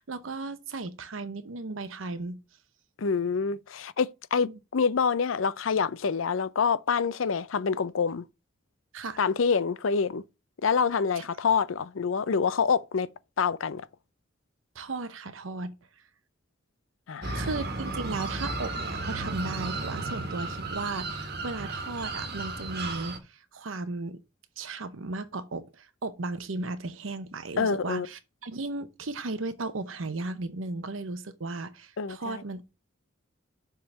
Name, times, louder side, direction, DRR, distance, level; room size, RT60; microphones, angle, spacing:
voice 1, 0.0-2.4 4.4-4.5 8.9-9.2 11.2-11.3 14.7-15.7 17.3-24.2 24.6-32.6, right 3 dB, 85° right, 0.8 m, -35 dB
voice 2, 3.0-8.3 9.2-10.2 10.6-13.1 13.4-13.9 17.1-17.5 27.6-28.1 32.0-32.4, left 5 dB, 80° left, 0.5 m, -26 dB
sound 1, 17.2-23.2, right 3 dB, 55° right, 1.5 m, -34 dB
7.0 x 3.8 x 6.5 m
head